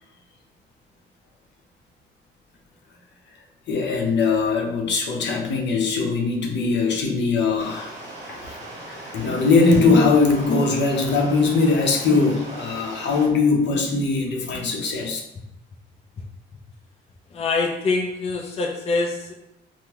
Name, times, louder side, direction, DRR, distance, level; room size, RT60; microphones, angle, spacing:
voice 1, 3.7-8.0 8.3-15.2, left 4 dB, 65° left, 1 dB, 0.7 m, -21 dB
Stream, 7.6-13.3, right 1 dB, 35° right, 1.3 m, -39 dB
voice 2, 17.3-19.3, left 3 dB, 30° left, 1 dB, 0.4 m, -24 dB
3.6 x 2.1 x 2.9 m, 0.86 s
cardioid pair, 90°, 20 cm